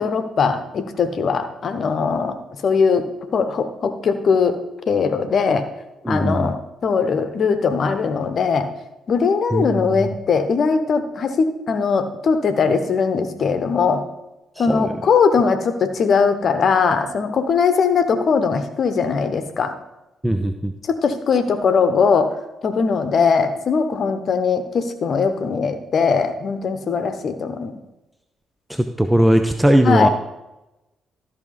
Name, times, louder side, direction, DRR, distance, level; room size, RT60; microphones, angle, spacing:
voice 1, 0.0-2.4 2.6-4.6 4.9-5.6 6.1-8.7 9.1-14.0 14.6-19.7 20.9-22.3 22.6-27.7 29.8-30.1, left 5 dB, 50° left, 9 dB, 1.1 m, -20 dB
voice 2, 6.0-6.5 9.5-10.1 14.6-14.9 20.2-20.7 28.7-30.1, right 1 dB, 5° right, 7 dB, 0.7 m, -19 dB
13.5 x 6.1 x 3.9 m, 0.97 s
figure-of-eight pair, 40°, 0 cm